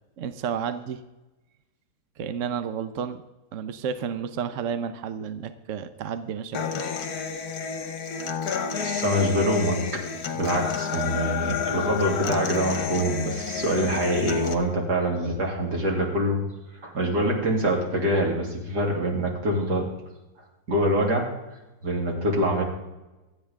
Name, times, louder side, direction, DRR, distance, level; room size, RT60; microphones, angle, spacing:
voice 1, 0.2-1.0 2.2-3.2 3.5-6.6, right 7 dB, 60° right, 10 dB, 1.0 m, -31 dB
Human voice / Acoustic guitar, 6.5-14.5, left 6 dB, 70° left, 1.7 m, -30 dB
voice 2, 8.8-10.0 10.3-16.4 16.8-19.9 20.7-21.3 21.8-22.6, equal, 90° right, -1 dB, 3.4 m, -25 dB
25.5 x 8.9 x 3.6 m, 1.1 s
omnidirectional pair, 1.7 m